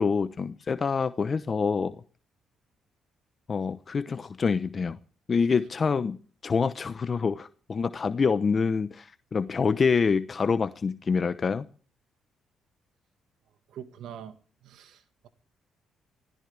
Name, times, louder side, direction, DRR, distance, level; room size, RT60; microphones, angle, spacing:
voice 1, 0.0-2.0 3.5-5.0 5.3-11.7, left 5 dB, 40° left, 0.8 m, -26 dB
voice 2, 13.7-14.4 14.6-15.3, right 9 dB, 80° right, 1.6 m, -44 dB
25.0 x 16.5 x 3.4 m
cardioid pair, 90°, 0 cm